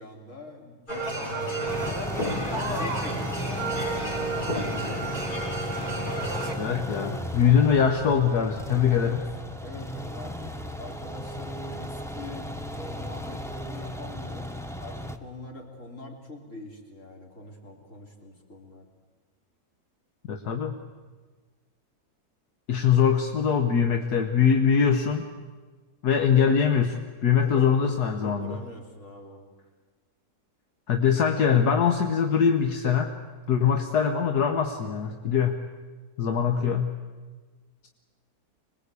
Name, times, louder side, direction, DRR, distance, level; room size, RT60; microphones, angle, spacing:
voice 1, 0.0-2.1 2.5-5.2 8.9-9.2 9.6-18.9 27.4-27.9 28.2-29.4, left 1 dB, 50° left, 1 dB, 3.8 m, -43 dB
sound 1, 0.9-6.5, right 2 dB, 30° left, 3.9 m, -31 dB
sound 2, 1.6-15.2, equal, ahead, 0.8 m, -35 dB
voice 2, 6.6-9.2 20.3-20.7 22.7-25.3 26.0-27.0 27.2-28.6 30.9-33.1 33.5-35.6 36.2-36.9, left 7 dB, 80° left, 5 dB, 1.7 m, -22 dB
25.0 x 20.5 x 8.4 m, 1.4 s
omnidirectional pair, 1.7 m